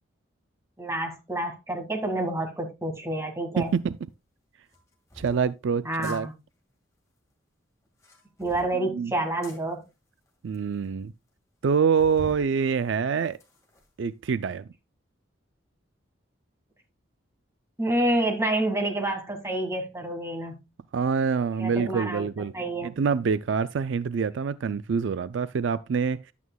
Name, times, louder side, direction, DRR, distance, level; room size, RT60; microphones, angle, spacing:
voice 1, 0.8-3.8 5.8-6.3 8.4-9.8 17.8-20.6 21.6-22.3 22.5-22.9, right 1 dB, 15° right, 1.9 m, -28 dB
sound 1, 3.6-3.8 4.7-5.4 5.9-6.2 7.9-8.7 9.4-9.6 10.3-10.4 10.5-10.6 11.0-11.1 12.0-12.4 12.9-13.9, left 1 dB, 15° left, 1.9 m, -45 dB
voice 2, 3.6-4.0 5.2-6.3 8.8-9.1 10.4-11.1 11.6-13.4 14.0-14.7 20.9-22.5 22.8-26.2, right 6 dB, 70° right, 0.4 m, -26 dB
11.0 x 8.3 x 2.3 m
head